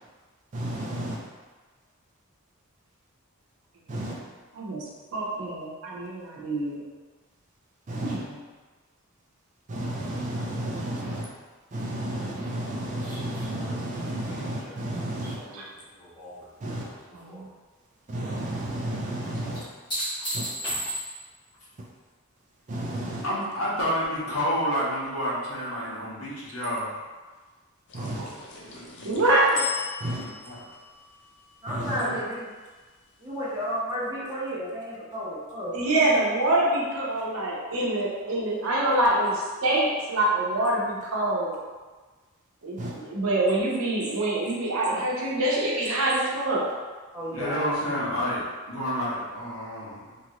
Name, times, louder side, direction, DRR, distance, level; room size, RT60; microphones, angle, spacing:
voice 1, 0.5-1.2 3.9-4.2 7.9-8.2 9.7-11.2 11.7-15.4 16.6-16.9 18.1-19.6 20.3-20.5 22.7-23.2 27.9-28.2 30.0-30.2 31.7-32.0 42.8-42.9, right 1 dB, 35° right, -3 dB, 0.4 m, -32 dB
voice 2, 4.5-6.8 7.9-8.4 15.5-15.7 16.6-16.7 17.1-17.4 29.0-29.6 35.7-41.6 42.6-46.8, right 1 dB, 75° right, -5 dB, 0.7 m, -25 dB
sound 1, 13.0-16.5 16.8-17.5 19.5-21.4 24.0-24.1, right 1 dB, 20° left, 1.1 m, -36 dB
voice 3, 23.2-26.9 27.9-29.2 30.0-30.6 31.9-32.2 47.3-50.2, equal, 75° left, -9 dB, 1.3 m, -30 dB
sound 2, 27.9-32.4, left 7 dB, 55° left, 0.4 m, -38 dB
voice 4, 31.6-32.5 33.2-35.7 47.1-47.6, equal, 15° right, -9 dB, 0.9 m, -32 dB
3.0 x 2.6 x 2.9 m, 1.3 s
head